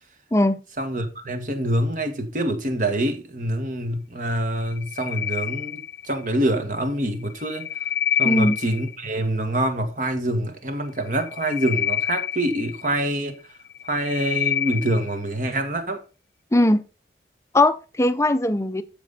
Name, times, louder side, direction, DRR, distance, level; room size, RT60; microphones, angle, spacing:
voice 1, 0.8-7.7 8.2-13.3 13.9-16.0, right 1 dB, 45° right, 1.7 m, -25 dB
sound 1, 4.6-6.3 7.2-9.1 11.1-13.2 13.6-15.2, left 10 dB, 75° left, 0.5 m, -28 dB
voice 2, 8.2-8.6 16.5-16.8 17.5-18.8, left 1 dB, 15° left, 0.6 m, -19 dB
13.5 x 5.2 x 4.1 m
head